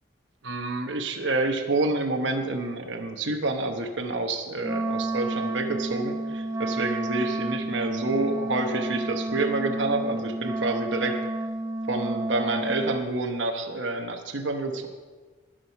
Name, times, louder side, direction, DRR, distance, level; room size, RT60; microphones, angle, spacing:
voice 1, 0.4-11.2 11.9-14.9, right 2 dB, 75° right, 4 dB, 1.0 m, -28 dB
Wind instrument woodwind instrument, 4.6-13.0, right 2 dB, 15° right, 0.4 m, -31 dB
14.5 x 6.3 x 5.5 m, 1.3 s
head